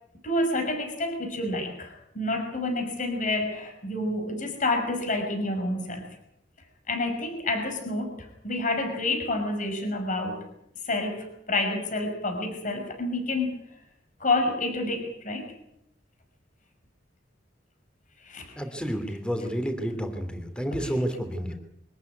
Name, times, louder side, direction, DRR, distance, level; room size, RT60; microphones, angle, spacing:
voice 1, 0.2-6.0 6.9-10.4 10.8-13.6 14.2-15.5 18.2-18.6 20.7-20.9, left 2 dB, 45° left, 4 dB, 5.6 m, -29 dB
voice 2, 18.6-21.5, equal, 5° left, 6 dB, 3.2 m, -30 dB
24.5 x 14.0 x 9.7 m, 0.77 s
head